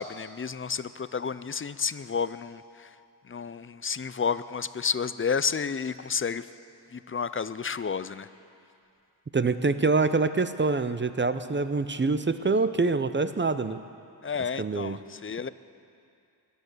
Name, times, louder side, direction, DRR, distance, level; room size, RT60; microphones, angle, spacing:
voice 1, 0.0-2.9 3.3-6.5 6.9-8.3 14.2-15.5, left 6 dB, 30° left, 15 dB, 0.5 m, -31 dB
voice 2, 9.3-13.8 14.6-15.0, right 3 dB, 25° right, 12 dB, 0.6 m, -25 dB
17.0 x 11.0 x 6.8 m, 2.5 s
cardioid pair, 60°, 44 cm